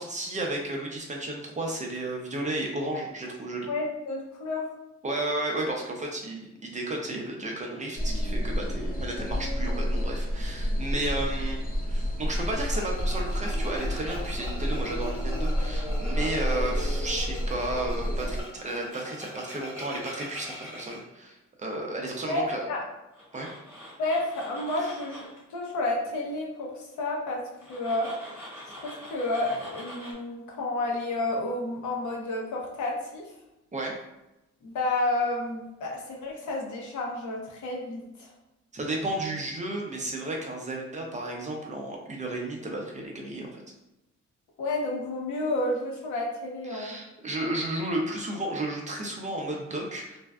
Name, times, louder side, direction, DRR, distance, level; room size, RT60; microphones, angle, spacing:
voice 1, 0.0-3.7 5.0-11.6 11.9-22.7 23.3-23.5 33.7-34.0 38.7-43.6 46.7-50.2, right 1 dB, 25° right, 0 dB, 0.5 m, -33 dB
voice 2, 3.7-4.7 22.3-22.8 24.0-25.2 25.5-27.4 27.7-28.1 28.8-33.2 34.6-38.3 44.6-47.0, left 2 dB, 75° left, -1 dB, 0.7 m, -30 dB
sound 1, 8.0-18.4, equal, 30° left, 0.5 m, -29 dB
Tools, 12.4-21.0 23.1-25.4 27.6-30.1, left 1 dB, 10° right, 1.2 m, -44 dB
2.5 x 2.2 x 2.3 m, 0.93 s
cardioid pair, 90°, 30 cm